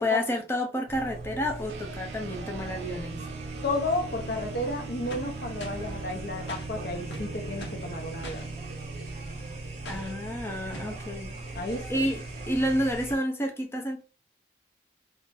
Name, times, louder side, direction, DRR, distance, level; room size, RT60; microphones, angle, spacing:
voice 1, 0.0-3.2 9.9-11.3 11.9-14.0, left 1 dB, 15° left, 0.5 m, -30 dB
sound 1, 0.9-13.1, right 2 dB, 40° right, 0.8 m, -39 dB
sound 2, 1.7-11.4, right 5 dB, 90° right, 0.4 m, -43 dB
voice 2, 3.6-8.5 11.5-12.1, left 2 dB, 55° left, 0.8 m, -32 dB
sound 3, 5.1-5.9 6.5-6.7 7.1-7.9 8.2-8.5 9.8-10.2 10.7-11.0, left 1 dB, 85° left, 1.0 m, -42 dB
2.5 x 2.4 x 3.8 m
head